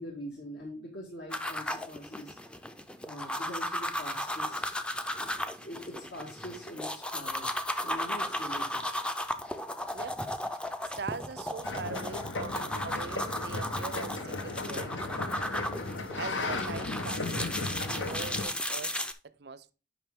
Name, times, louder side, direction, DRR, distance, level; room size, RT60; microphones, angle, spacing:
voice 1, 0.0-2.4 3.0-4.6 5.2-8.8, equal, 70° left, 1.7 m, -43 dB
sound 1, 1.3-19.1, left 1 dB, 5° left, 0.4 m, -35 dB
voice 2, 9.9-10.3 10.8-15.5 16.1-19.7, right 4 dB, 60° right, 0.5 m, -42 dB
sound 2, 11.6-18.4, left 3 dB, 85° left, 1.1 m, -36 dB
8.8 x 5.4 x 3.6 m
head